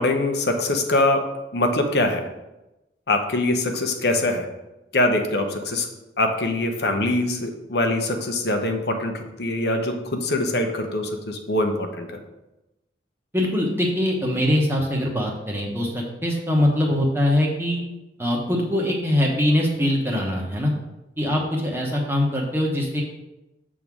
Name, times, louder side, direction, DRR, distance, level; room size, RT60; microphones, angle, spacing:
voice 1, 0.0-2.3 3.1-4.5 4.9-5.9 6.2-12.2, left 2 dB, 60° left, 5 dB, 0.9 m, -23 dB
voice 2, 13.3-17.8 18.2-20.7 21.2-23.0, left 1 dB, 15° right, -2 dB, 1.1 m, -22 dB
7.1 x 3.8 x 6.0 m, 0.97 s
head